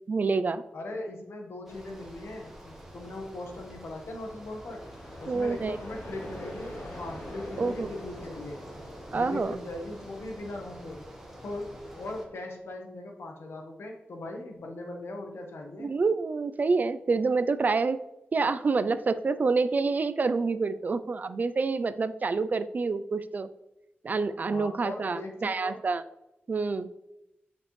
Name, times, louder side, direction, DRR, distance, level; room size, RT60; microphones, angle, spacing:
voice 1, 0.0-0.6 5.3-5.8 7.6-7.9 9.1-9.6 15.8-18.0 18.3-23.5 24.0-26.0 26.5-26.9, right 4 dB, 45° right, 12 dB, 0.4 m, -27 dB
voice 2, 0.7-4.8 5.2-8.6 9.1-11.0 11.4-15.9 24.5-25.8, left 2 dB, 90° left, 2 dB, 1.2 m, -39 dB
Bicycle, 1.7-12.3, equal, 5° right, 1.3 m, -47 dB
sound 1, 4.6-10.4, left 1 dB, 50° left, 2.2 m, -44 dB
8.0 x 5.2 x 3.2 m, 0.89 s
wide cardioid pair, 150°, 4 cm